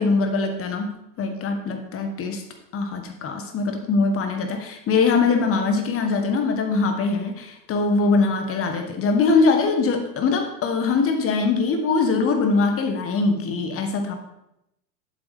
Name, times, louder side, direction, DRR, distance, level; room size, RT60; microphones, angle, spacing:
voice 1, 0.0-2.4 2.7-14.2, left 4 dB, 25° left, 5 dB, 1.4 m, -22 dB
8.1 x 6.9 x 3.6 m, 0.83 s
hypercardioid pair, 100°, 50 cm